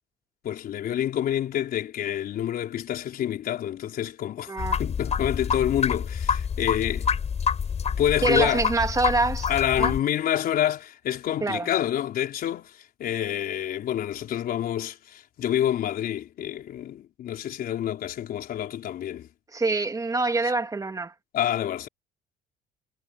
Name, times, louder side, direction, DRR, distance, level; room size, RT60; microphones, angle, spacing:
voice 1, 0.4-4.5 4.8-7.1 8.0-8.7 9.5-19.3 21.3-21.9, left 11 dB, 60° left, 4.3 m, -28 dB
voice 2, 4.5-4.8 8.2-9.5 9.8-9.9 11.4-11.7 19.5-21.1, right 3 dB, 20° right, 2.7 m, -25 dB
sound 1, 4.6-10.0, left 7 dB, 40° left, 6.1 m, -27 dB
cardioid pair, 110°, 17 cm